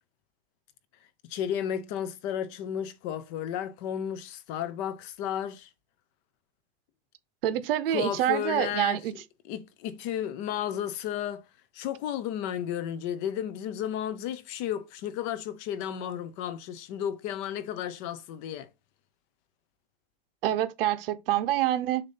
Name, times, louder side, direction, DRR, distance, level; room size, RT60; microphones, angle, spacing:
voice 1, 1.2-5.7 7.9-9.0 9.4-11.4 11.7-18.7, left 10 dB, 30° left, 0.5 m, -33 dB
voice 2, 7.4-9.1 20.4-22.0, right 13 dB, 65° right, 0.9 m, -26 dB
6.8 x 2.7 x 5.4 m
supercardioid pair, 175°, 31 cm